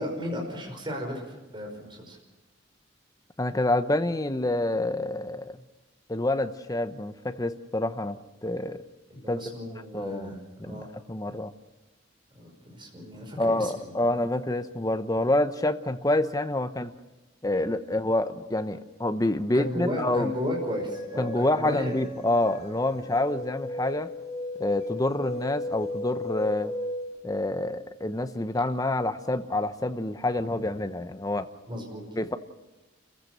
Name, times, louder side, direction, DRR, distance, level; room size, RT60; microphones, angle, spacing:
voice 1, 0.0-2.2 9.1-10.9 12.3-14.0 19.5-22.0 31.7-32.0, equal, 25° right, 0 dB, 5.3 m, -34 dB
voice 2, 3.4-5.6 6.1-8.2 8.4-8.8 9.3-10.3 10.6-11.5 13.4-16.9 17.4-20.3 21.2-24.1 24.6-26.7 27.2-31.5 32.2-32.4, left 1 dB, 20° left, 10 dB, 0.9 m, -27 dB
sound 1, 20.0-27.2, left 2 dB, 40° left, 6.0 m, -36 dB
29.5 x 15.5 x 6.7 m, 1.1 s
head